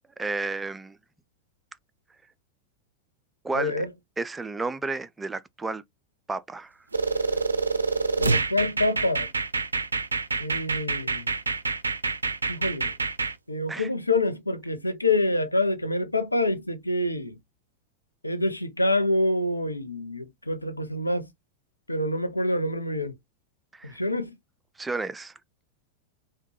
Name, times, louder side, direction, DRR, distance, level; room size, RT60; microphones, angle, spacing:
voice 1, 0.2-1.0 3.4-3.9 4.2-5.8 6.3-6.8 13.7-13.9 23.7-24.0 24.8-25.3, right 3 dB, 10° right, 0.3 m, -32 dB
voice 2, 3.5-3.9 8.2-9.3 10.4-11.3 12.5-12.9 13.5-17.4 18.2-21.3 21.9-23.1 23.8-24.4, left 2 dB, 85° left, 0.6 m, -26 dB
sound 1, 6.9-13.3, right 4 dB, 75° right, 0.4 m, -27 dB
3.5 x 2.2 x 3.0 m
figure-of-eight pair, 90°, 0 cm